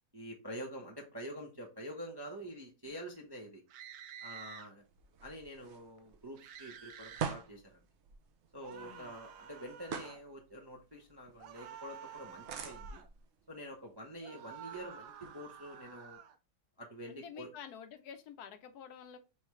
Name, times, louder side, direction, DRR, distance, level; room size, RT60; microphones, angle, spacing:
voice 1, 0.1-3.6 4.2-4.8 5.2-7.8 8.5-13.0 13.5-16.2 16.8-17.5, equal, 25° right, 1 dB, 0.5 m, -47 dB
sound 1, 3.7-4.7 6.4-7.4 8.6-10.2 11.4-13.1 14.2-16.3, right 9 dB, 80° right, 1.2 m, -50 dB
sound 2, 4.8-16.1, right 7 dB, 65° right, 0.7 m, -47 dB
voice 2, 8.7-9.1 17.1-19.2, left 8 dB, 75° left, 8 dB, 1.1 m, -49 dB
5.6 x 3.1 x 3.0 m, 0.29 s
omnidirectional pair, 1.8 m